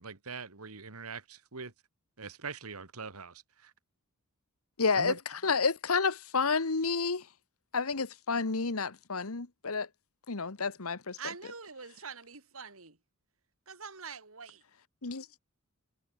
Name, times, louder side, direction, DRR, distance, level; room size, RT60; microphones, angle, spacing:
voice 1, 0.0-1.7 2.2-3.7 5.0-5.2, right 4 dB, 90° right, 1.8 m, -42 dB
voice 2, 4.8-5.1 5.4-7.2 7.7-9.9 10.3-11.2 15.0-15.3, left 4 dB, 80° left, 1.4 m, -30 dB
voice 3, 11.2-13.0 13.7-14.6, right 6 dB, 70° right, 3.4 m, -44 dB
head